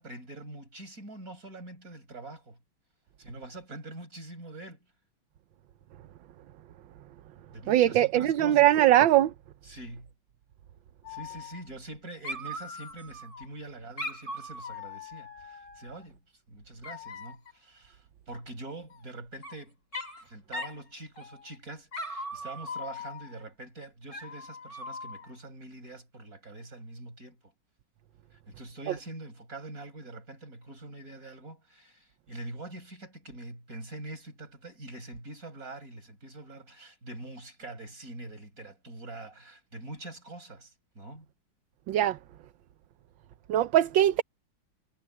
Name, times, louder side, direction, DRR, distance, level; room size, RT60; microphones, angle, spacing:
voice 1, 0.0-2.6 3.2-4.8 7.5-8.7 9.6-10.1 11.1-16.2 16.5-19.8 20.2-27.4 28.3-41.3, right 2 dB, 40° right, 7.0 m, -44 dB
voice 2, 7.7-9.3 41.9-42.2 43.5-44.2, right 13 dB, 70° right, 1.4 m, -21 dB
Dog, 11.0-12.0 12.2-13.5 14.0-16.0 16.8-17.5 18.9-19.5 19.9-20.2 20.5-20.8 21.2-21.6 21.9-23.4 24.1-25.3, left 2 dB, 35° left, 6.2 m, -40 dB
omnidirectional pair, 2.3 m